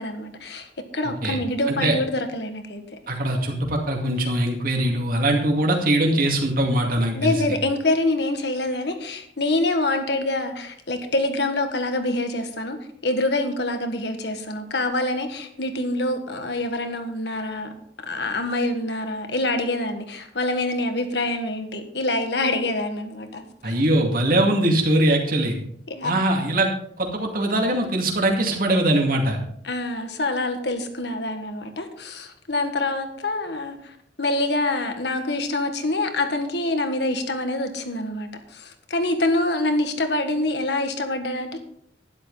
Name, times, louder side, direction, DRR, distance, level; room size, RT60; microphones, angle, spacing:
voice 1, 0.0-2.8 7.1-12.8 13.0-17.7 18.1-23.7 25.9-26.1 29.6-41.6, left 2 dB, 70° left, 7 dB, 1.6 m, -26 dB
voice 2, 3.1-7.3 23.6-25.6 26.0-26.7 27.0-29.4, right 1 dB, 50° right, 1 dB, 2.3 m, -21 dB
12.0 x 11.0 x 4.1 m, 0.66 s
head